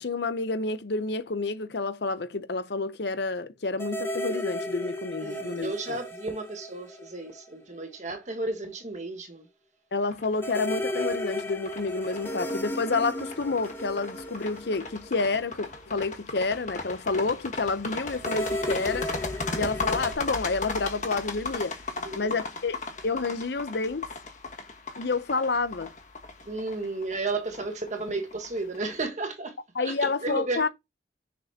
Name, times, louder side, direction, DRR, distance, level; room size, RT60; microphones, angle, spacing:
voice 1, 0.0-6.0 9.9-19.1 19.5-21.8 22.1-22.8 23.0-24.1 25.0-25.9 29.8-30.7, left 3 dB, 65° left, 0.7 m, -29 dB
sound 1, 3.8-7.5 7.8-7.9 10.4-15.8 18.1-20.1, left 1 dB, 15° left, 1.1 m, -34 dB
voice 2, 5.2-9.5 22.0-22.4 26.4-30.7, right 2 dB, 40° right, 1.4 m, -33 dB
sound 2, 10.1-28.9, left 3 dB, 45° left, 1.4 m, -36 dB
6.8 x 6.0 x 2.8 m
head